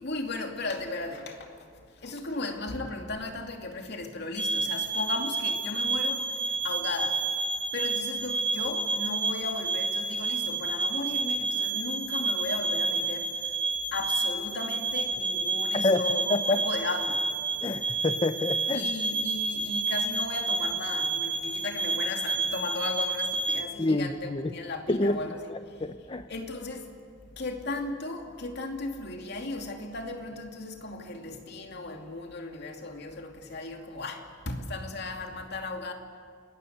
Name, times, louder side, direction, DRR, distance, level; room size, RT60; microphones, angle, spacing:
voice 1, 0.0-1.5 2.0-6.2 6.6-7.2 7.7-13.3 13.9-17.3 18.7-25.4 26.3-26.9 27.4-35.9, left 2 dB, 55° left, 2.6 m, -36 dB
sound 1, 4.4-23.6, right 3 dB, 5° left, 1.4 m, -30 dB
voice 2, 15.7-16.6 17.6-18.9 23.8-24.6 24.9-25.2 25.5-26.3, left 2 dB, 25° left, 0.7 m, -28 dB
28.5 x 20.5 x 8.0 m
head